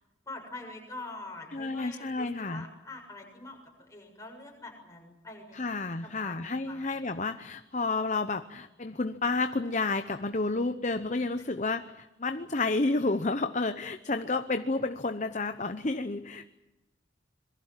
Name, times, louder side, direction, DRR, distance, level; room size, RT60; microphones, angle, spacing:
voice 1, 0.3-5.6 6.0-6.4 6.7-6.9 11.4-11.5, left 2 dB, 15° left, 1 dB, 6.9 m, -45 dB
voice 2, 1.5-2.6 5.5-16.5, left 3 dB, 40° left, 9 dB, 0.8 m, -30 dB
27.0 x 22.5 x 7.5 m, 0.98 s
head